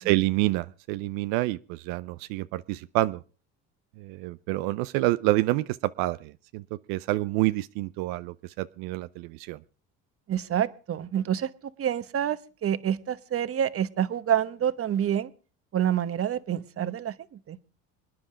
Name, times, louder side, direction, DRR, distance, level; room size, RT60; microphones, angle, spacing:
voice 1, 0.0-3.2 4.0-6.6 6.9-9.6, right 18 dB, 90° right, 13 dB, 0.7 m, -28 dB
voice 2, 10.3-11.5 11.8-15.3 15.7-17.6, right 10 dB, 40° right, 14 dB, 1.1 m, -27 dB
25.5 x 9.8 x 5.0 m, 0.37 s
supercardioid pair, 100°, 34 cm